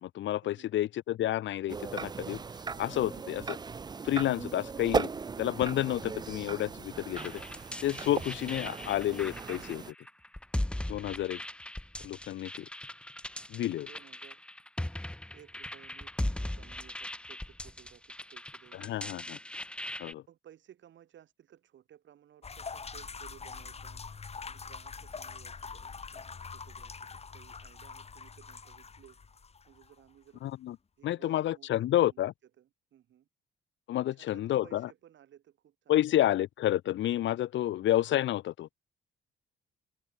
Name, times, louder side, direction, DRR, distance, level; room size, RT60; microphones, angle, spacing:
voice 1, 0.0-2.4 2.8-3.6 4.0-5.1 5.4-7.4 7.8-9.9 10.9-11.4 12.0-12.7 13.5-13.9 18.8-19.4 20.0-20.2 30.4-30.8 31.0-32.3 33.9-34.9 35.9-38.7, left 13 dB, 70° left, 0.8 m, -30 dB
sound 1, 1.7-9.9, right 5 dB, 20° right, 0.4 m, -37 dB
sound 2, 7.2-20.1, left 1 dB, 5° left, 0.8 m, -39 dB
voice 2, 10.9-11.4 13.8-14.4 15.3-19.2 20.3-24.0 24.4-25.9 26.5-27.0 27.3-29.2 29.7-30.4 31.0-32.3 32.6-33.3 34.0-36.2, right 10 dB, 70° right, 4.4 m, -58 dB
sound 3, 22.4-30.0, left 5 dB, 30° left, 1.8 m, -44 dB
open air
cardioid pair, 90°, 20 cm